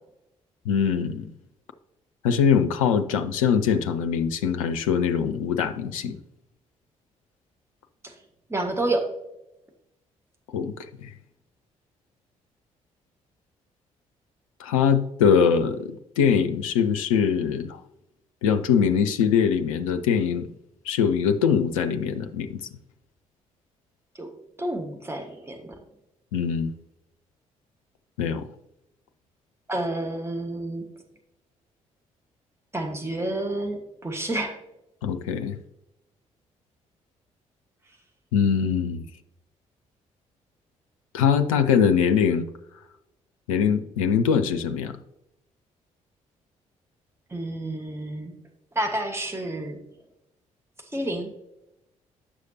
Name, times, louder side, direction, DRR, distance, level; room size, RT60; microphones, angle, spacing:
voice 1, 0.7-1.3 2.2-6.2 10.5-10.7 11.0-11.1 14.6-17.8 18.4-20.5 20.9-22.6 26.3-26.7 28.2-28.4 35.0-35.6 38.3-39.0 41.1-42.5 43.5-44.9, left 7 dB, 80° left, 8 dB, 0.4 m, -22 dB
voice 2, 8.5-9.1 24.2-24.3 24.6-25.6 29.7-30.8 32.7-34.6 47.3-48.3 48.7-49.8 50.9-51.3, right 1 dB, 15° right, 3 dB, 1.3 m, -29 dB
9.9 x 6.4 x 2.7 m, 0.87 s
figure-of-eight pair, 40°, 17 cm